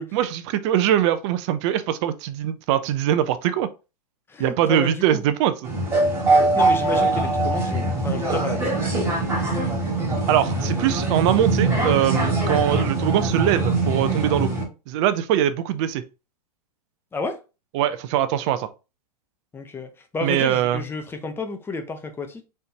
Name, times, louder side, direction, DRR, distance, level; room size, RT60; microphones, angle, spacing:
voice 1, 0.1-3.7 4.4-5.7 10.3-14.5 14.9-16.0 17.7-18.7 20.2-20.8, right 11 dB, 45° right, 0.6 m, -22 dB
voice 2, 4.3-5.2 6.5-8.9 17.1-17.4 19.5-22.5, left 3 dB, 10° left, 0.7 m, -31 dB
sound 1, 5.6-14.6, right 2 dB, 10° right, 2.2 m, -22 dB
4.3 x 3.5 x 2.8 m
hypercardioid pair, 115°, 21 cm